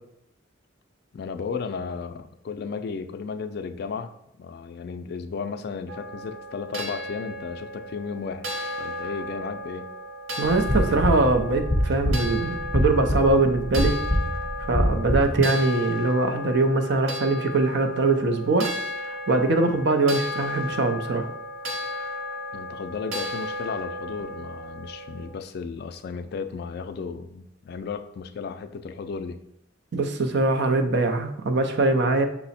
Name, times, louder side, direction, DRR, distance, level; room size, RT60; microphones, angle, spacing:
voice 1, 1.1-4.1 4.4-8.5 8.8-9.9 22.5-29.4, left 5 dB, 55° left, 9 dB, 0.3 m, -34 dB
sound 1, 5.9-25.3, left 1 dB, 85° right, 0.8 m, -34 dB
sound 2, 10.4-15.4, equal, 15° right, 0.7 m, -25 dB
voice 2, 10.4-14.0 14.7-18.7 19.3-21.3 29.9-32.3, right 3 dB, 60° right, 6 dB, 0.5 m, -22 dB
5.7 x 2.0 x 4.0 m, 0.78 s
head